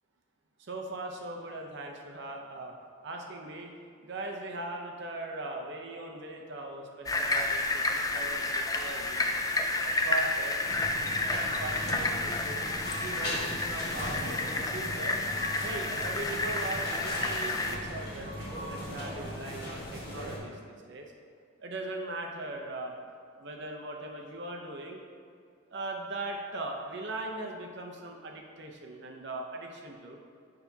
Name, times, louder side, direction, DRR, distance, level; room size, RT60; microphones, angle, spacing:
voice 1, 0.6-2.7 3.0-3.7 4.0-9.3 9.8-10.6 11.3-12.7 13.0-15.2 15.6-21.1 21.6-23.0 23.4-25.0 25.7-30.2, right 2 dB, 55° right, 1 dB, 0.7 m, -40 dB
sound 1, 7.1-17.8, left 2 dB, 15° left, 0.3 m, -31 dB
sound 2, 10.6-20.4, equal, 50° left, 1.6 m, -38 dB
sound 3, 13.5-14.9 15.5-16.3 17.4-18.0 18.3-18.4, equal, 10° right, 0.8 m, -49 dB
9.2 x 5.7 x 2.8 m, 2.2 s
head